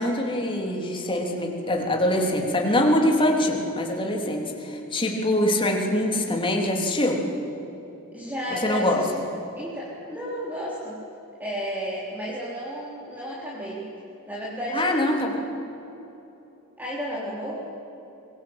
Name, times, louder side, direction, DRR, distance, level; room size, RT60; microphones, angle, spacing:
voice 1, 0.0-7.2 8.5-9.0 14.7-15.4, left 1 dB, 25° left, 1 dB, 3.3 m, -24 dB
voice 2, 8.1-9.2 9.5-11.0 11.4-13.8 14.3-14.9 16.8-17.6, equal, 10° right, -7 dB, 3.9 m, -32 dB
24.0 x 21.5 x 8.9 m, 3.0 s
head